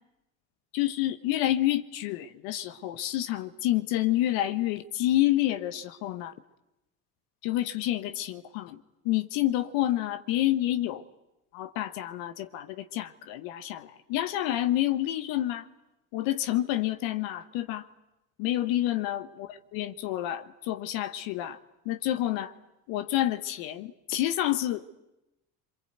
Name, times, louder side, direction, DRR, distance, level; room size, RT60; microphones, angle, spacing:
voice 1, 0.7-6.3 7.4-11.0 11.5-15.7 16.1-17.9 18.4-21.6 21.8-22.5 22.9-24.9, left 14 dB, 70° left, 9 dB, 1.3 m, -28 dB
29.0 x 23.5 x 8.0 m, 0.95 s
hypercardioid pair, 60°, 47 cm